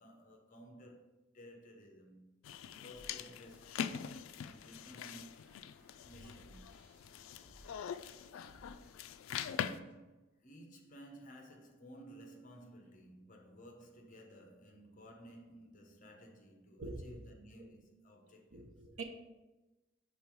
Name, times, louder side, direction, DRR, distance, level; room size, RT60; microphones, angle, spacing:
voice 1, 0.0-2.3 2.8-4.0 4.4-5.6 6.0-6.7 9.5-18.7, equal, 40° left, 0.8 m, -56 dB
sound 1, 2.4-9.8, left 8 dB, 80° left, 0.3 m, -43 dB
sound 2, 2.9-9.9, equal, 5° right, 1.3 m, -63 dB
voice 2, 16.8-17.2 18.5-19.0, right 3 dB, 90° right, 0.8 m, -44 dB
5.4 x 3.8 x 4.6 m
head